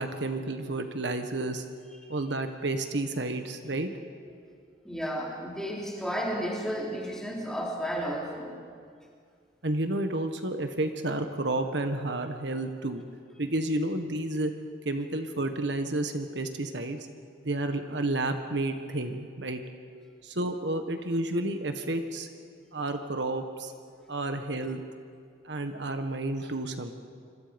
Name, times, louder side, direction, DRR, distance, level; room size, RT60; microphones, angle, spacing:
voice 1, 0.0-1.6 2.1-3.9 9.6-13.0 13.4-14.5 14.8-17.0 17.4-19.6 20.2-22.3 22.7-23.7 24.1-24.8 25.4-26.9, right 2 dB, 65° right, 6 dB, 1.5 m, -31 dB
voice 2, 4.8-8.6, equal, 5° left, -3 dB, 3.6 m, -32 dB
26.5 x 26.0 x 5.3 m, 2.2 s
head